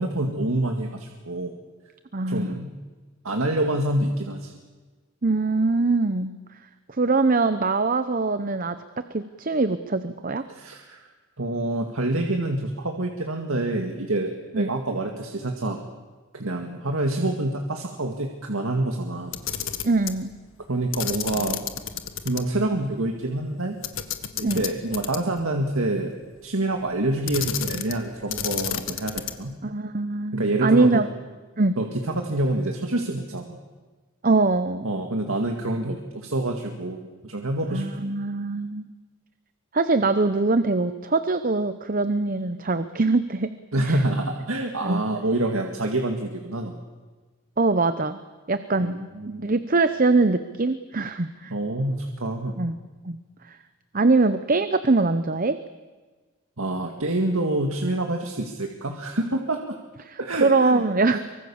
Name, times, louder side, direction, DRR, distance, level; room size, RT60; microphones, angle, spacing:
voice 1, 0.0-1.5 2.3-2.7 3.2-4.5 10.5-11.1 11.4-15.8 16.3-19.3 20.7-21.6 22.2-23.8 24.4-26.1 26.4-29.5 30.3-31.0 31.8-33.6 34.8-37.8 43.7-46.8 48.8-49.6 51.5-52.6 56.6-59.8 60.2-61.2, right 1 dB, 80° right, 3 dB, 2.1 m, -27 dB
voice 2, 2.1-2.6 5.2-6.4 7.0-10.4 14.5-14.7 19.8-20.3 24.4-24.7 29.6-31.1 31.6-31.8 34.2-34.9 37.7-38.9 39.7-43.5 43.8-44.0 44.8-45.0 47.6-48.2 48.5-49.0 49.3-51.5 52.6-52.8 53.1-53.2 53.5-53.6 53.9-55.6 60.0-61.2, right 3 dB, 40° right, 11 dB, 0.8 m, -23 dB
Camera, 19.2-20.2 20.9-22.4 22.7-22.8 23.8-25.4 27.3-28.0 28.3-29.5, left 9 dB, 70° left, 1.6 m, -31 dB
24.5 x 24.0 x 7.2 m, 1.3 s
head